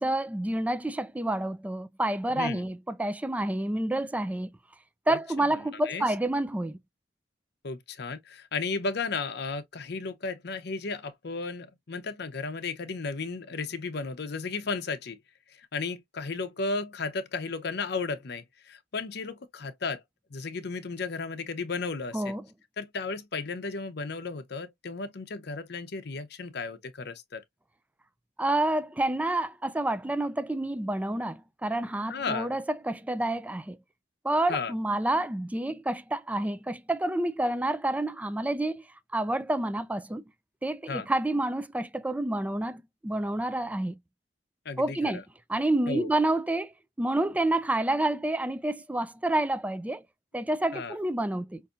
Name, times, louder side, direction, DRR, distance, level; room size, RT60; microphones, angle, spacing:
voice 1, 0.0-4.5 5.1-6.8 22.1-22.4 28.4-33.8 34.2-38.8 39.1-40.2 40.6-44.0 44.8-45.2 45.5-46.7 47.0-50.0 50.3-51.6, right 1 dB, 10° right, 0.3 m, -28 dB
voice 2, 5.1-5.5 5.8-6.1 7.6-15.2 15.5-20.0 20.3-22.3 22.8-27.4 32.1-32.5 34.5-34.7 40.9-41.1 44.6-45.2 45.9-46.1 50.7-51.0, left 4 dB, 65° left, 0.7 m, -34 dB
5.5 x 2.6 x 2.4 m
head